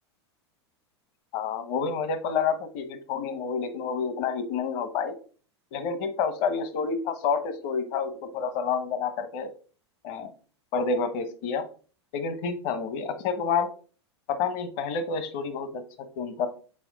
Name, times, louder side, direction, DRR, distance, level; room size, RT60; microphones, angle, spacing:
voice 1, 1.3-5.1 5.7-9.5 10.0-10.3 10.7-11.7 12.1-13.7 14.3-16.5, left 5 dB, 55° left, 10 dB, 1.2 m, -29 dB
6.2 x 4.4 x 3.6 m, 0.39 s
hypercardioid pair, 100°, 14 cm